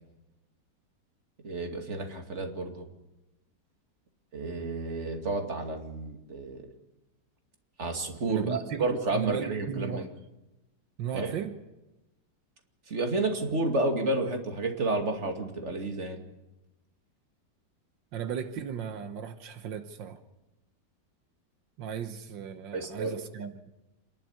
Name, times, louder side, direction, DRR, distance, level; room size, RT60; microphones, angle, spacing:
voice 1, 1.4-2.9 4.3-6.7 7.8-10.1 11.1-11.3 12.9-16.2 22.7-23.2, right 2 dB, 40° right, 2.6 m, -31 dB
voice 2, 8.3-8.9 9.1-10.0 11.0-11.6 18.1-20.2 21.8-23.7, right 8 dB, 85° right, 1.8 m, -36 dB
27.5 x 11.5 x 9.8 m
omnidirectional pair, 2.0 m